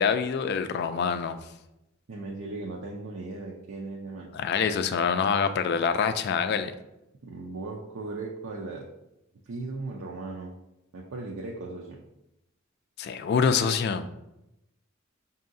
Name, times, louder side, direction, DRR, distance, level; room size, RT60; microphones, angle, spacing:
voice 1, 0.0-1.4 4.3-6.7 13.0-14.1, left 6 dB, 55° left, 9 dB, 0.3 m, -25 dB
voice 2, 2.1-4.3 7.2-8.9 9.5-10.5 10.9-12.0, right 3 dB, 75° right, -1 dB, 0.5 m, -37 dB
5.5 x 2.7 x 2.6 m, 0.89 s
head